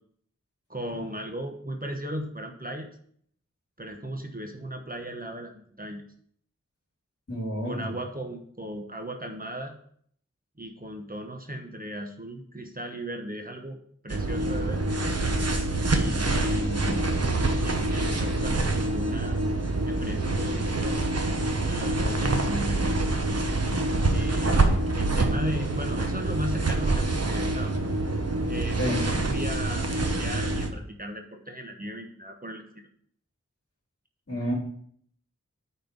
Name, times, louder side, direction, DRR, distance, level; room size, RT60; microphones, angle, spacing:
voice 1, 0.7-2.9 3.8-6.0 7.7-9.8 10.6-13.8 14.0-14.8 15.8-19.4 19.9-21.0 21.7-23.2 24.1-24.7 24.9-27.7 28.5-32.7, right 1 dB, 30° right, 4 dB, 1.1 m, -37 dB
voice 2, 7.3-7.9 28.8-29.0 34.3-34.5, equal, 50° left, -2 dB, 3.4 m, -29 dB
sound 1, 14.1-30.7, right 2 dB, 55° right, 1.1 m, -26 dB
9.4 x 4.4 x 5.2 m, 0.63 s
wide cardioid pair, 55°, 30 cm